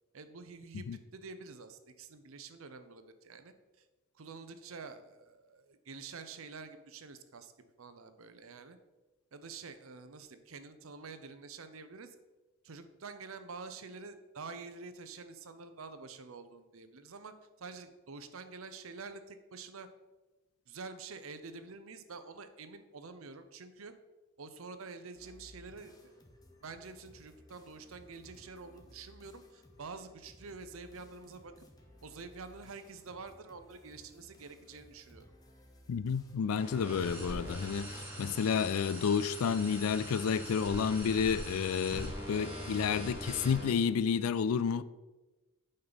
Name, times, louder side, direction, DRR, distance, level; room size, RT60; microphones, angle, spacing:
voice 1, 0.1-3.8 4.1-7.5 7.8-8.8 9.3-12.2 12.6-19.9 20.7-23.9 24.4-26.2 26.6-31.5 32.0-35.3 37.2-37.4, right 4 dB, 70° right, 0.7 m, -48 dB
sound 1, 25.1-37.7, left 1 dB, 15° left, 0.9 m, -59 dB
voice 2, 35.9-44.8, left 6 dB, 85° left, 0.4 m, -30 dB
sound 2, 36.6-43.7, equal, 10° right, 1.8 m, -42 dB
8.7 x 5.4 x 4.0 m
head